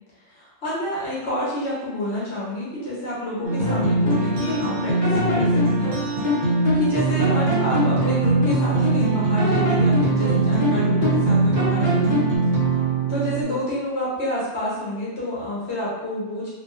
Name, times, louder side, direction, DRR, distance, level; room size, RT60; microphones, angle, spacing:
voice 1, 0.3-5.9 6.3-12.2 13.1-16.5, left 1 dB, 60° left, -7 dB, 1.1 m, -29 dB
sound 1, 3.4-13.4, right 3 dB, 55° right, 0.6 m, -21 dB
sound 2, 3.6-4.7 5.0-6.9 7.2-9.0 9.4-11.3 11.6-12.4, left 3 dB, 40° left, 0.8 m, -26 dB
2.5 x 2.2 x 2.3 m, 1.1 s
omnidirectional pair, 1.2 m